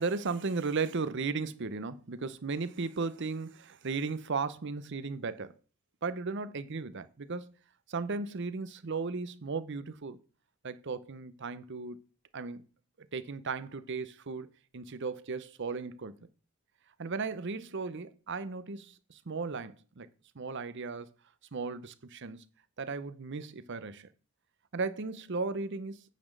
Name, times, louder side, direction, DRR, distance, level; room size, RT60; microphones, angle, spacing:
voice 1, 0.0-5.5 6.0-7.5 7.9-10.2 10.6-12.0 12.3-12.6 13.1-16.2 17.0-20.1 20.3-21.1 21.5-22.4 22.8-24.1 24.7-26.0, right 4 dB, 55° right, 0.7 m, -36 dB
9.1 x 4.2 x 6.5 m
head